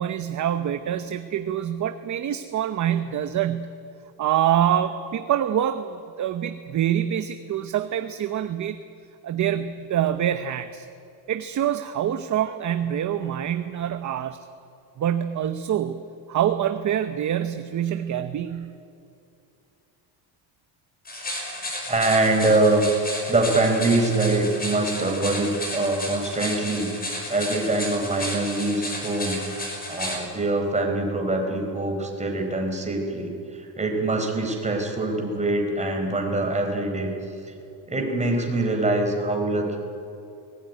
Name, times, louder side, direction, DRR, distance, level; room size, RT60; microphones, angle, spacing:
voice 1, 0.0-3.7 4.2-8.8 9.2-10.9 11.3-14.5 15.0-16.0 16.3-18.8, right 10 dB, 40° right, 9 dB, 0.9 m, -25 dB
sound 1, 21.1-30.2, left 1 dB, 20° left, 5.3 m, -33 dB
voice 2, 21.9-26.9 27.3-29.4 29.9-37.1 37.9-39.8, right 2 dB, 15° right, 2 dB, 4.4 m, -24 dB
23.0 x 19.0 x 9.5 m, 2.6 s
cardioid pair, 140°, 46 cm